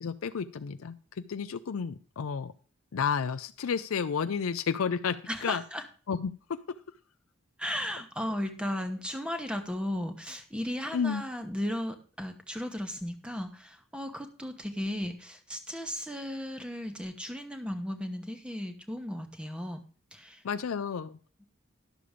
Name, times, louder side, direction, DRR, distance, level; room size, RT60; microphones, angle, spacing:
voice 1, 0.0-2.5 2.9-5.6 6.1-6.6 10.9-11.2 20.4-21.2, left 6 dB, 85° left, 10 dB, 0.5 m, -31 dB
voice 2, 5.3-5.8 7.6-19.8 20.1-20.4, equal, 5° right, 7 dB, 1.0 m, -35 dB
11.5 x 6.8 x 5.0 m, 0.41 s
head